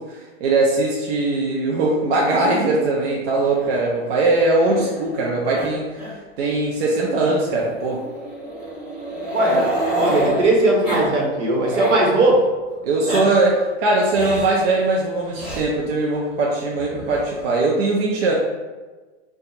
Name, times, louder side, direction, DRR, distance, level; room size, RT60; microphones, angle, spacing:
voice 1, 0.0-6.0 6.4-8.0 9.5-9.7 12.8-18.3, right 2 dB, 55° right, -3 dB, 0.6 m, -20 dB
Growling, 3.4-5.2 5.5-5.7 5.9-6.1 6.4-6.5 7.6-10.4 10.8-11.1 11.4-12.1 12.8-13.2 14.1-14.5 15.3-15.6 16.7-17.4, right 1 dB, 5° right, 0.3 m, -28 dB
voice 2, 9.3-9.7 9.9-12.4, right 2 dB, 70° right, -1 dB, 1.1 m, -18 dB
2.7 x 2.4 x 3.9 m, 1.3 s
hypercardioid pair, 150°, 37 cm